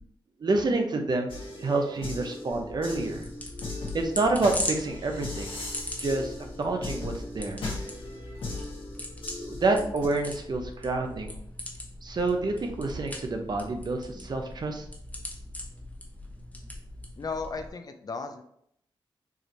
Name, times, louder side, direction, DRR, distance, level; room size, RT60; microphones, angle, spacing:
voice 1, 0.4-1.3 1.6-3.3 3.9-5.5 6.0-7.7 9.4-11.4 12.0-14.9, right 2 dB, 50° right, 3 dB, 0.7 m, -28 dB
sound 1, 1.3-10.1, left 2 dB, 90° left, 1.2 m, -38 dB
sound 2, 2.5-17.7, left 1 dB, 15° left, 0.9 m, -40 dB
voice 2, 17.2-18.4, left 4 dB, 45° left, 7 dB, 0.5 m, -35 dB
4.8 x 2.6 x 3.0 m, 0.70 s
cardioid pair, 75°, 9 cm